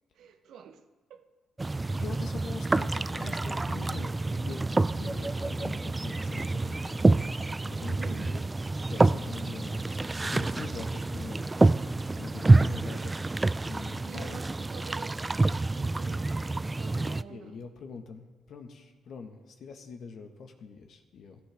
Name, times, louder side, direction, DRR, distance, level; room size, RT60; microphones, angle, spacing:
voice 1, 0.1-1.3 8.0-8.4 12.6-13.1 14.0-15.5 15.7-17.7, right 7 dB, 75° right, 1.0 m, -48 dB
sound 1, 1.6-17.2, right 2 dB, 20° right, 0.3 m, -27 dB
voice 2, 1.9-4.6 4.9-7.1 7.6-8.5 8.9-11.6 12.1-13.0 13.7-14.4 17.0-21.4, left 5 dB, 65° left, 1.5 m, -43 dB
15.5 x 15.0 x 3.6 m
cardioid pair, 90°, 0 cm